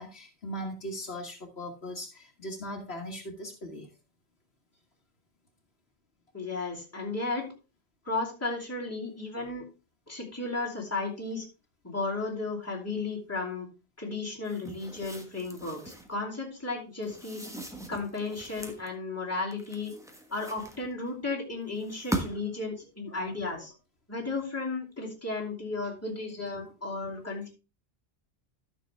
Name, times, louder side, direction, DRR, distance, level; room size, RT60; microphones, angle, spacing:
voice 1, 0.0-3.9, equal, 70° left, 2 dB, 1.8 m, -39 dB
voice 2, 6.3-7.5 8.0-9.7 10.1-11.4 11.8-13.7 14.0-17.4 17.9-19.9 20.3-23.7 24.1-27.5, left 3 dB, 15° left, -3 dB, 2.8 m, -34 dB
sound 1, 14.4-16.1 17.0-18.9 19.5-21.1 21.8-22.6, right 1 dB, 5° right, 1.2 m, -39 dB
12.5 x 6.4 x 3.3 m, 0.30 s
omnidirectional pair, 1.1 m